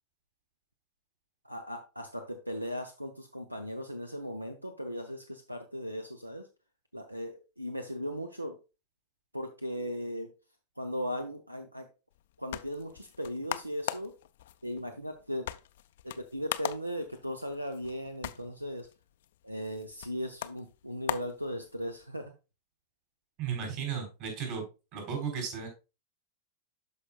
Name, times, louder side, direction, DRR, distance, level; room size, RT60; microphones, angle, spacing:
voice 1, 1.4-6.5 6.9-8.6 9.3-10.3 10.8-11.9 12.4-14.1 14.6-15.5 16.0-18.9 19.4-22.3, equal, 90° right, 7 dB, 0.6 m, -37 dB
sound 1, 12.1-22.1, left 12 dB, 55° left, 0.4 m, -41 dB
voice 2, 23.4-24.6 24.9-25.7, right 7 dB, 45° right, 3 dB, 3.5 m, -34 dB
12.0 x 4.9 x 2.3 m, 0.29 s
figure-of-eight pair, 90°, 0 cm